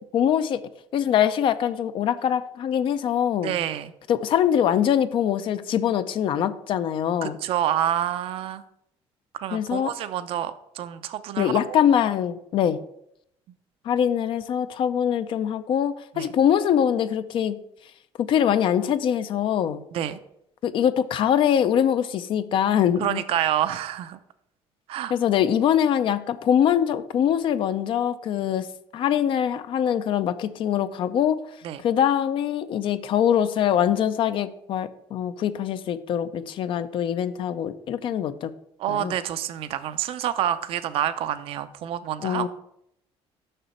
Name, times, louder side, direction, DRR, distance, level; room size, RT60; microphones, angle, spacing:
voice 1, 0.1-0.6 0.9-3.5 4.1-7.4 9.5-9.9 11.4-12.8 13.8-17.6 18.2-19.8 20.6-23.2 25.1-28.7 28.9-31.4 31.8-38.5 38.9-39.1 42.2-42.5, left 9 dB, 55° left, 12 dB, 0.5 m, -23 dB
voice 2, 3.4-3.9 7.2-8.6 9.3-11.8 16.2-16.3 19.9-20.2 23.0-24.2 24.9-25.1 31.6-31.8 38.8-42.5, right 11 dB, 60° right, 11 dB, 0.5 m, -28 dB
6.6 x 6.1 x 4.4 m, 0.74 s
cardioid pair, 140°, 11 cm